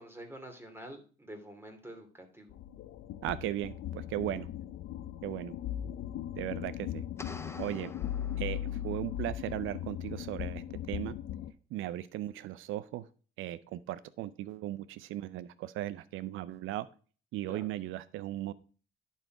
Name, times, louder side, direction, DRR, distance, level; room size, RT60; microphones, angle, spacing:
voice 1, 0.0-2.5 17.5-17.7, right 1 dB, 10° right, 4 dB, 2.7 m, -47 dB
sound 1, 2.5-11.5, left 11 dB, 85° left, 0.6 m, -38 dB
voice 2, 3.2-4.5 5.2-5.5 6.4-7.0 7.6-7.9 8.4-11.1 11.7-13.1 13.4-16.9 17.3-18.5, right 14 dB, 85° right, 16 dB, 0.5 m, -37 dB
sound 2, 7.2-9.1, left 2 dB, 15° left, 0.7 m, -47 dB
11.0 x 4.7 x 4.6 m, 0.38 s
cardioid pair, 90°, 20 cm